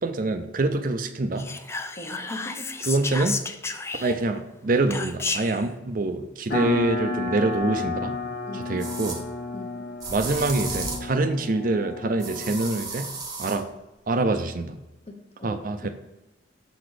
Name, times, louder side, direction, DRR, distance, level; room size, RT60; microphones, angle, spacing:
voice 1, 0.0-1.5 2.8-3.4 4.0-8.1 8.5-9.3 10.1-13.1 13.4-13.7 14.1-14.8 15.4-15.9, right 2 dB, 45° right, 7 dB, 0.5 m, -25 dB
Whispering, 1.4-4.4 4.9-5.6, left 4 dB, 15° left, 0.3 m, -32 dB
voice 2, 2.0-2.7 8.5-8.8 9.5-9.8 15.1-15.9, left 1 dB, 35° left, 3 dB, 1.0 m, -40 dB
sound 1, 6.5-12.7, left 3 dB, 60° left, 1.0 m, -32 dB
sound 2, 7.6-7.7 8.8-9.2 10.0-11.1 12.2-13.6, right 3 dB, 20° right, 1.0 m, -34 dB
7.0 x 4.0 x 4.9 m, 0.98 s
head